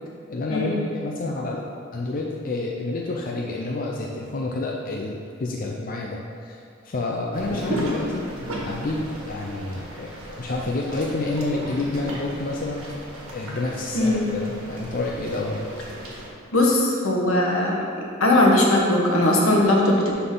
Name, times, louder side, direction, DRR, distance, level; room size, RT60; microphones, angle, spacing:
voice 1, 0.3-1.6 1.9-8.3 8.6-12.8 13.3-15.6, left 2 dB, 45° left, -1 dB, 0.5 m, -29 dB
sound 1, 7.3-16.3, right 1 dB, 90° right, 1.7 m, -35 dB
voice 2, 13.9-14.3 16.5-17.8 18.2-20.1, left 1 dB, 75° left, -2 dB, 1.3 m, -19 dB
11.0 x 4.0 x 3.8 m, 2.4 s
head